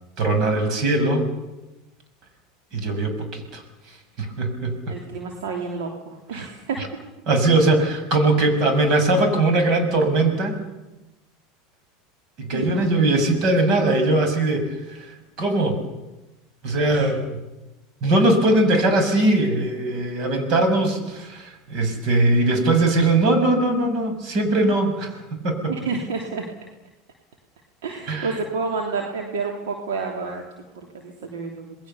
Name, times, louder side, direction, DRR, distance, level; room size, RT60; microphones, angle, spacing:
voice 1, 0.2-1.3 2.7-5.0 6.3-6.5 6.8-6.9 7.3-10.6 12.4-15.8 16.6-17.4 18.0-25.7 28.1-28.4, right 2 dB, 50° right, 7 dB, 6.6 m, -21 dB
voice 2, 4.9-6.8 12.5-12.8 16.9-17.1 25.7-26.4 27.8-30.4 30.9-31.7, right 4 dB, 75° right, 2 dB, 3.1 m, -29 dB
28.0 x 20.5 x 7.0 m, 1.0 s
hypercardioid pair, 90°, 0 cm